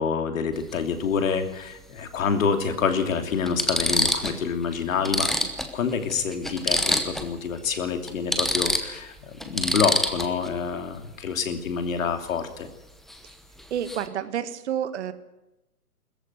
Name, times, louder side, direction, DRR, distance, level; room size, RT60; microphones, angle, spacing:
voice 1, 0.0-5.3 5.7-12.7, left 6 dB, 60° left, 7 dB, 3.0 m, -27 dB
sound 1, 0.5-0.7 2.2-2.3 3.0-3.1 3.5-4.4 4.7-4.8 5.0-7.3 7.6-7.8 8.1-10.5 13.1-13.3 13.6-14.1, equal, ahead, 0.8 m, -26 dB
voice 2, 13.7-15.1, right 9 dB, 45° right, 12 dB, 1.7 m, -29 dB
21.0 x 14.5 x 9.5 m, 0.99 s
hypercardioid pair, 140°, 45 cm